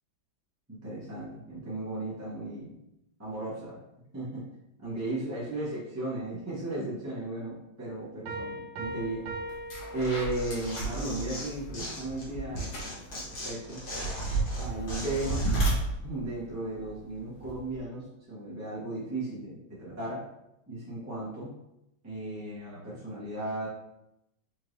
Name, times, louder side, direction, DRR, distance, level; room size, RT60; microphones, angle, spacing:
voice 1, 0.7-2.7 3.2-3.8 4.1-4.5 4.8-9.3 9.9-13.8 14.6-15.7 16.0-20.2 20.7-21.5 22.0-23.7, right 2 dB, 15° right, -8 dB, 0.5 m, -35 dB
Piano, 8.3-10.7, right 2 dB, 80° right, 1.4 m, -39 dB
sound 1, 9.0-9.1 9.5-17.8, right 2 dB, 70° left, 1.8 m, -33 dB
Tearing, 10.0-12.3 12.6-15.7, left 1 dB, 40° left, 0.8 m, -40 dB
4.4 x 2.6 x 3.1 m, 0.87 s
omnidirectional pair, 2.2 m